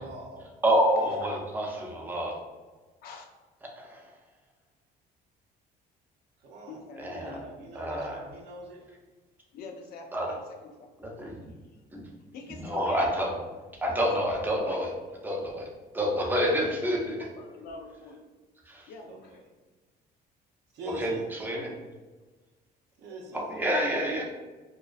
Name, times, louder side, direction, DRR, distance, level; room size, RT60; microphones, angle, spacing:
voice 1, 0.0-1.2 1.7-1.9 6.4-6.8 7.1-8.9 14.3-14.4 19.1-19.4 20.7-21.3 23.0-24.0, right 2 dB, 85° right, 0 dB, 0.6 m, -44 dB
voice 2, 0.6-2.3 3.8-4.1 7.0-7.4 7.7-8.2 10.1-10.3 11.0-11.4 11.9-12.0 12.6-13.4 13.8-14.9 15.2-15.7 15.9-17.2 18.7-18.9 21.0-21.7 23.3-24.2, equal, 10° right, -2 dB, 0.5 m, -28 dB
voice 3, 6.7-7.5 9.5-10.9 11.3-11.4 11.7-11.8 12.3-13.4 14.1-14.9 17.1-18.2 18.9-19.4, left 3 dB, 65° left, 3 dB, 0.4 m, -45 dB
2.3 x 2.2 x 2.4 m, 1.3 s
cardioid pair, 110°, 17 cm